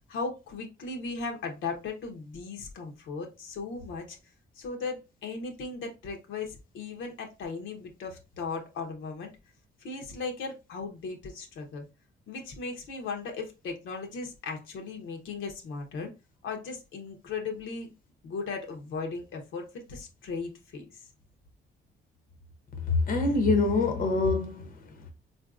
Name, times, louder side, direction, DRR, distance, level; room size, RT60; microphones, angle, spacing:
voice 1, 0.1-4.2 4.6-9.3 9.8-11.8 12.3-16.1 16.4-17.9 18.2-21.0, left 4 dB, 75° left, 0.8 m, -37 dB
voice 2, 22.8-25.1, left 3 dB, 45° left, 0.7 m, -26 dB
3.8 x 2.5 x 2.3 m
cardioid pair, 90°, 20 cm